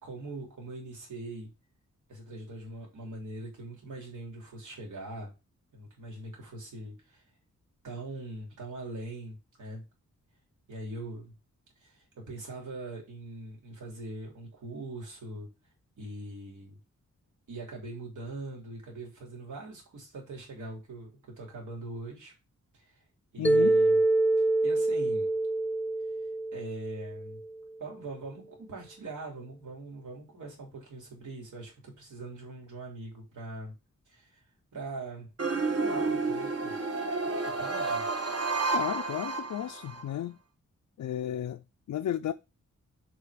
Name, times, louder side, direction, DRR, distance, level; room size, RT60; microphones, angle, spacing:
voice 1, 0.0-1.5 2.1-5.3 5.7-7.2 7.8-9.8 10.7-11.3 11.8-15.5 16.0-16.8 17.5-22.3 22.7-23.0 23.3-24.0 24.6-25.3 26.5-27.4 27.8-33.7 34.1-34.4 34.7-35.3 35.7-36.7 37.4-38.0, right 2 dB, 80° right, 3.5 m, -42 dB
voice 2, 23.4-23.8 38.7-40.4 41.0-42.3, left 11 dB, 75° left, 0.5 m, -33 dB
Mallet percussion, 23.4-27.6, right 2 dB, 5° left, 0.4 m, -26 dB
sound 1, 35.4-40.0, right 3 dB, 55° right, 1.6 m, -30 dB
6.9 x 4.9 x 5.0 m
wide cardioid pair, 135°, 30 cm